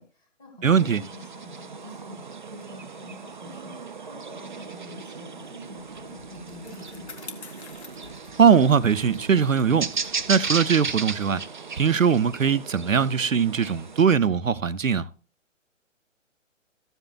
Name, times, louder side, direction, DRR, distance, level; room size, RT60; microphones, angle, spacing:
voice 1, 0.0-2.2 2.5-7.5, left 2 dB, 10° left, 2.3 m, -46 dB
sound 1, 0.6-14.0, right 5 dB, 40° right, 0.4 m, -36 dB
voice 2, 0.6-1.0 8.4-9.9 10.3-11.4 11.8-15.0, right 7 dB, 80° right, 0.7 m, -20 dB
Bicycle, 5.5-12.2, left 4 dB, 55° left, 1.4 m, -48 dB
14.5 x 8.0 x 2.2 m
figure-of-eight pair, 135°, 38 cm